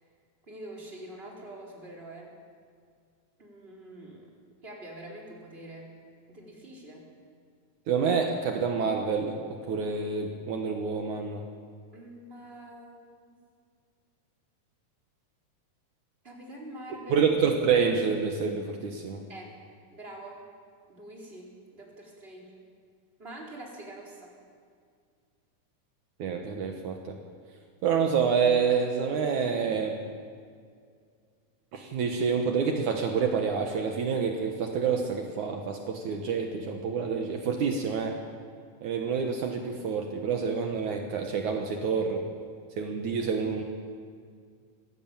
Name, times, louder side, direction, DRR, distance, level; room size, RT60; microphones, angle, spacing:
voice 1, 0.5-2.3 3.4-4.3 4.6-5.9 6.3-7.1 11.9-13.3 16.2-17.2 19.3-19.6 19.9-20.4 20.9-22.6 23.2-24.3, right 1 dB, 15° right, -3 dB, 4.3 m, -45 dB
voice 2, 7.9-9.4 9.7-11.4 17.1-19.2 26.2-27.2 27.8-30.0 31.7-38.2 38.8-42.2 42.8-43.6, right 6 dB, 65° right, 3 dB, 2.6 m, -27 dB
20.0 x 15.5 x 9.0 m, 2.1 s
omnidirectional pair, 3.9 m